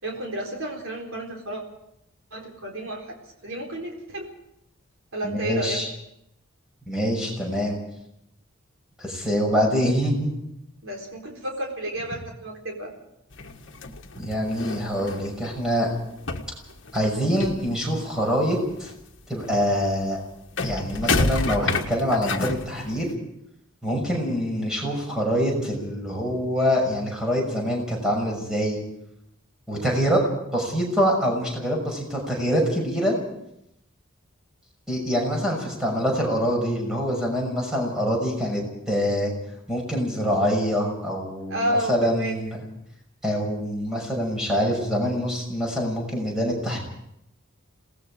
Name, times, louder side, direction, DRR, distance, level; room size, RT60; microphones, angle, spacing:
voice 1, 0.0-1.6 2.3-3.2 3.4-4.3 5.1-5.8 10.8-12.9 41.5-42.3, right 1 dB, 70° right, 1 dB, 4.0 m, -31 dB
voice 2, 5.2-5.9 6.9-7.8 9.0-10.3 14.2-15.9 16.9-18.9 19.3-20.2 20.6-23.1 23.8-28.8 29.7-30.2 30.5-33.2 34.9-39.3 39.7-42.6 43.2-46.8, equal, 5° right, -1 dB, 6.1 m, -25 dB
sound 1, 13.3-15.9 16.2-18.1 18.4-23.2, left 3 dB, 60° left, 1.5 m, -30 dB
27.5 x 19.0 x 4.9 m, 0.80 s
head